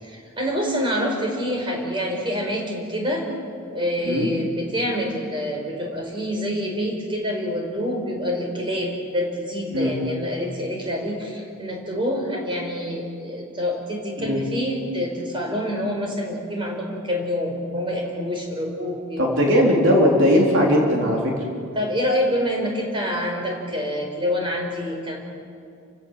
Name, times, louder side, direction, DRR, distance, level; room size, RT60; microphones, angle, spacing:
voice 1, 0.0-3.3 3.7-19.2 21.7-25.2, equal, 25° right, 1 dB, 4.8 m, -26 dB
voice 2, 19.2-21.3, equal, 60° right, -1 dB, 3.7 m, -18 dB
30.0 x 16.5 x 7.6 m, 2.4 s
head